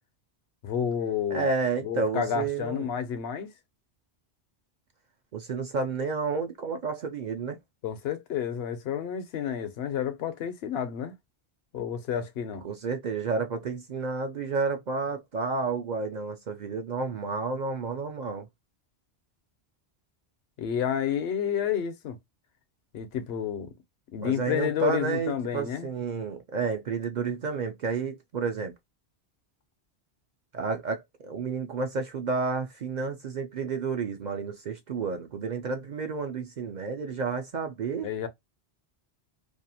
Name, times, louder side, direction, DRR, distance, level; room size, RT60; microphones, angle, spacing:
voice 1, 0.6-1.5 1.8-3.5 7.8-11.1 11.7-12.6 20.6-22.2 22.9-23.7 24.1-25.9 38.0-38.3, left 8 dB, 75° left, 0.8 m, -30 dB
voice 2, 1.3-2.9 5.3-7.6 12.6-18.5 24.2-28.7 30.5-38.1, right 4 dB, 55° right, 0.5 m, -31 dB
2.6 x 2.3 x 2.7 m
omnidirectional pair, 1.1 m